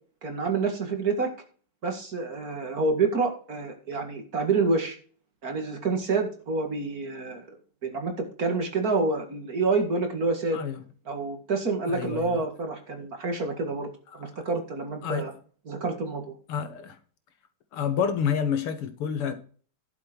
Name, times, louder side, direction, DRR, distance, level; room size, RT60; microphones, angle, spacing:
voice 1, 0.2-1.3 1.8-5.0 5.4-7.4 7.8-10.6 11.1-13.9 14.1-15.3 15.7-16.4, right 3 dB, 45° right, 2.4 m, -28 dB
voice 2, 10.5-10.8 11.9-12.4 15.0-15.3 16.5-17.0 17.7-19.3, left 7 dB, 80° left, 2.2 m, -28 dB
11.5 x 7.7 x 4.5 m
omnidirectional pair, 2.4 m